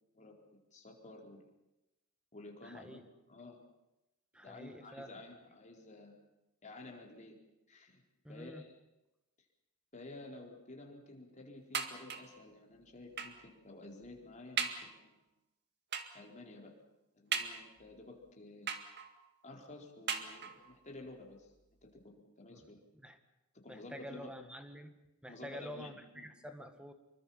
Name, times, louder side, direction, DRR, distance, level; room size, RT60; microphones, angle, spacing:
voice 1, 0.1-1.4 2.3-3.6 4.4-6.2 6.6-7.4 7.7-8.0 8.3-8.7 9.9-15.2 16.1-16.7 17.1-18.7 19.4-21.5 21.8-22.8 23.6-24.3 25.3-26.3, left 2 dB, 35° left, 1 dB, 4.6 m, -52 dB
voice 2, 2.6-3.0 4.3-5.2 8.2-8.6 22.5-22.6 23.0-23.2 23.7-25.0 25.2-26.9, equal, 5° right, 7 dB, 2.0 m, -48 dB
sound 1, 11.7-12.4 13.2-13.5 14.0-14.1 14.6-14.9 15.9-16.3 17.3-17.9 18.7-19.3 20.1-20.8 21.6-21.7 22.0-22.1, right 6 dB, 50° right, 2.0 m, -39 dB
27.0 x 23.5 x 5.8 m, 0.94 s
head